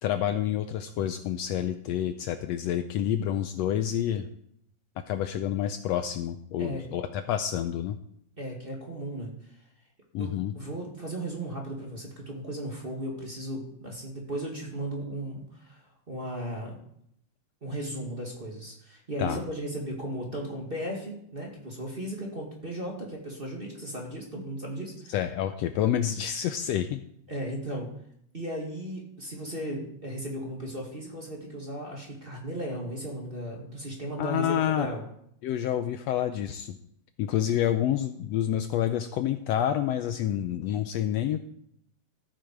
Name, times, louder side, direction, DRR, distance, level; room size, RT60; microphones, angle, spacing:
voice 1, 0.0-4.3 5.1-8.0 10.1-10.5 19.2-19.4 25.1-27.0 34.2-34.9 35.4-36.8 37.2-41.4, left 10 dB, 75° left, 9 dB, 1.6 m, -28 dB
voice 2, 8.4-9.5 10.2-16.8 17.6-25.1 27.3-27.9 28.3-35.0, right 1 dB, 20° right, -1 dB, 1.8 m, -36 dB
14.0 x 8.8 x 4.6 m, 0.71 s
omnidirectional pair, 3.3 m